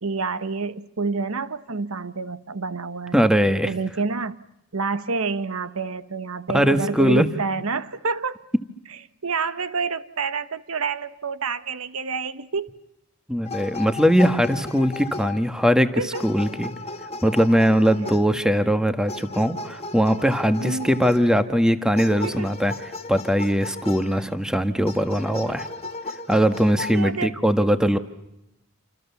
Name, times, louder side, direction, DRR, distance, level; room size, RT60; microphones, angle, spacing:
voice 1, 0.0-3.2 3.6-4.4 4.7-8.4 9.2-12.7 16.0-16.2 20.6-21.0 22.2-22.5 26.9-27.4, right 4 dB, 75° right, 1.1 m, -28 dB
voice 2, 3.1-3.7 6.5-7.3 13.3-16.7 17.2-22.7 23.1-25.7 26.3-28.0, equal, 5° right, 1.5 m, -20 dB
sound 1, 13.5-15.8 16.1-18.5 19.1-21.4 22.0-24.4 24.9-26.9, left 3 dB, 30° left, 1.7 m, -36 dB
28.5 x 27.0 x 7.1 m
head